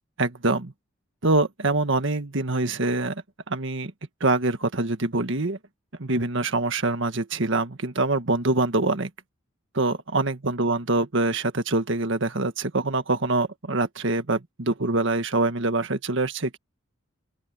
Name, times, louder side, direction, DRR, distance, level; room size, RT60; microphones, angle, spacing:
voice 1, 0.2-0.7 1.2-3.9 4.2-5.6 6.0-9.1 9.7-16.6, right 2 dB, 65° right, 1.7 m, -25 dB
open air
head